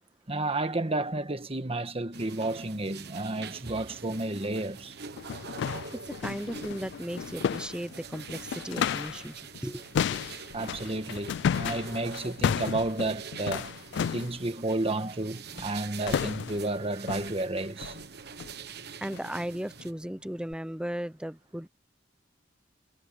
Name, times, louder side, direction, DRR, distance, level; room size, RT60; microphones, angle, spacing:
voice 1, 0.3-5.0 10.5-13.8 14.1-18.0, right 2 dB, 30° right, 1.4 m, -31 dB
sound 1, 2.1-19.9, right 5 dB, 60° right, 1.2 m, -45 dB
sound 2, 4.4-4.5 5.1-9.3 9.5-14.4 15.6-15.8 16.1-16.7 17.1-17.4 17.8-18.0 18.4-18.6 19.1-19.3 19.8-19.9 20.5-20.6, left 7 dB, 65° left, 0.3 m, -33 dB
voice 2, 5.9-9.8 18.6-18.7 19.0-21.7, equal, 5° right, 0.8 m, -36 dB
head